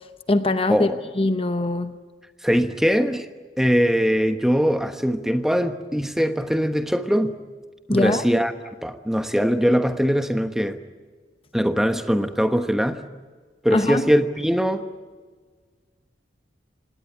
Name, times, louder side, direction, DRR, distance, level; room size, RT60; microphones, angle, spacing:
voice 1, 0.3-0.9 1.2-2.0 7.9-8.2 13.7-14.0, left 2 dB, 30° left, 10 dB, 0.8 m, -21 dB
voice 2, 2.4-3.3 3.6-7.4 7.9-8.5 8.8-10.8 11.5-13.0 13.6-14.9, equal, ahead, 8 dB, 1.2 m, -21 dB
26.5 x 19.0 x 9.7 m, 1.5 s
head